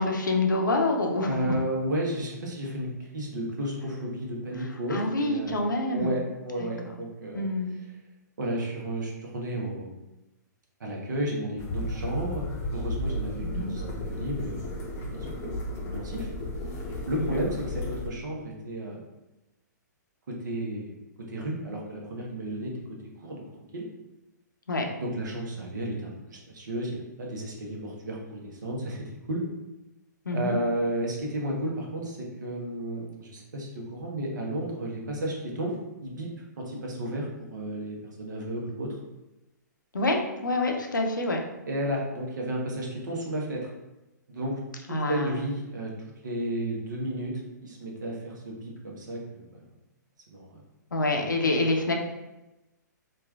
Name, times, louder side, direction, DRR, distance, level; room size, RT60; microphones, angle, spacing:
voice 1, 0.0-1.6 4.9-6.1 6.6-6.9 7.3-7.7 13.4-13.7 17.1-17.4 24.7-24.9 30.3-30.6 39.9-41.4 44.9-45.4 50.9-51.9, left 2 dB, 90° left, 2 dB, 0.5 m, -27 dB
voice 2, 1.2-5.6 5.9-7.4 8.4-10.0 10.8-13.8 14.1-14.7 15.1-15.3 15.9-16.3 17.1-19.0 20.3-21.0 21.3-22.7 23.2-23.4 23.7-23.8 25.0-29.4 30.3-35.7 36.0-36.3 36.6-39.0 41.7-43.7 44.3-45.9 46.2-47.3 47.6-49.6 50.3-50.6, right 1 dB, 70° right, -1 dB, 0.8 m, -32 dB
sound 1, 11.6-18.1, left 1 dB, 25° left, 0.6 m, -33 dB
3.1 x 2.4 x 2.3 m, 0.98 s
hypercardioid pair, 125°, 10 cm